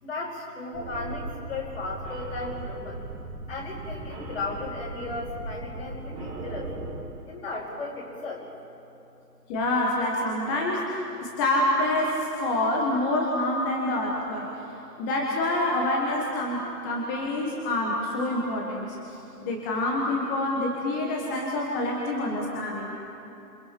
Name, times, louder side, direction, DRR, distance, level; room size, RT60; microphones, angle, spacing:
voice 1, 0.0-3.0 3.5-6.7 7.3-8.4, left 3 dB, 50° left, -6 dB, 5.4 m, -35 dB
sound 1, 0.7-7.0, right 2 dB, 15° right, 2.4 m, -37 dB
voice 2, 9.5-14.5 15.0-19.0 19.4-22.9, left 1 dB, 15° left, -2 dB, 1.4 m, -27 dB
28.5 x 27.5 x 4.6 m, 2.9 s
figure-of-eight pair, 140°, 48 cm